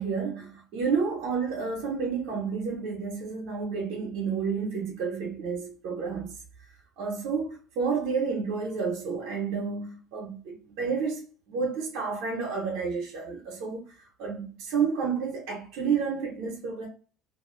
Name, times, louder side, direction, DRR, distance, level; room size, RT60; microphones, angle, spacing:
voice 1, 0.0-6.3 7.0-13.8 14.2-16.9, right 5 dB, 75° right, 0.8 m, -30 dB
2.4 x 2.2 x 3.0 m
supercardioid pair, 90°, 0 cm